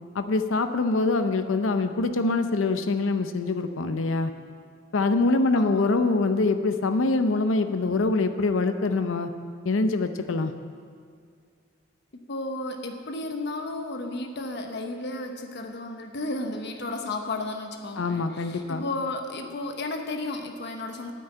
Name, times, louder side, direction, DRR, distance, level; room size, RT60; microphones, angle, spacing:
voice 1, 0.1-4.3 4.9-9.3 9.6-10.5 18.0-18.8, left 3 dB, 80° left, 8 dB, 0.6 m, -24 dB
voice 2, 5.5-6.0 12.3-21.1, left 2 dB, 60° left, 4 dB, 0.9 m, -33 dB
9.4 x 9.1 x 8.9 m, 2.1 s
head